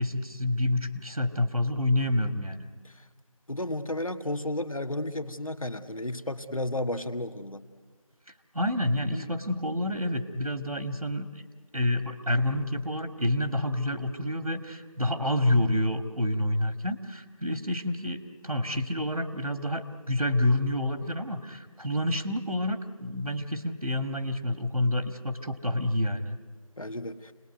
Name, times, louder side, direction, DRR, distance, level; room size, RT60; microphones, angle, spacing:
voice 1, 0.0-2.6 8.5-11.3 11.7-26.4, left 1 dB, 85° right, 7 dB, 2.3 m, -28 dB
voice 2, 3.5-7.7 9.1-9.3 26.8-27.3, left 1 dB, 70° left, 9 dB, 1.7 m, -33 dB
29.5 x 20.5 x 9.3 m, 1.5 s
figure-of-eight pair, 175°, 18 cm